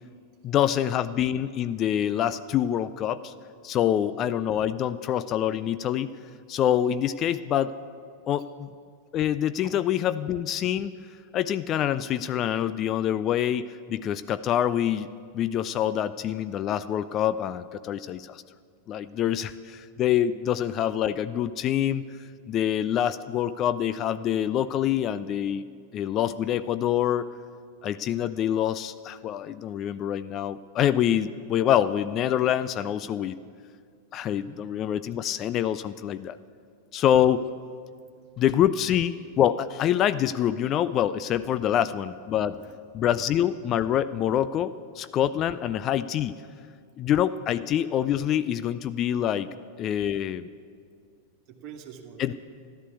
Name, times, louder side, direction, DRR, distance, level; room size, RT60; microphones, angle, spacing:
voice 1, 0.4-3.3 3.6-6.1 6.5-7.7 8.3-8.7 9.1-10.9 11.3-15.1 15.3-18.4 18.9-22.0 22.5-25.6 25.9-27.3 27.8-33.4 34.1-36.4 36.9-37.5 38.4-42.6 42.9-46.4 47.0-49.5 49.8-50.5 52.2-52.3, left 10 dB, 30° left, 14 dB, 0.4 m, -26 dB
voice 2, 34.3-34.6 37.4-37.5 41.7-41.9 42.3-43.1 51.5-52.3, right 8 dB, 40° right, 4 dB, 1.8 m, -48 dB
14.0 x 11.5 x 8.2 m, 2.2 s
figure-of-eight pair, 90°, 0 cm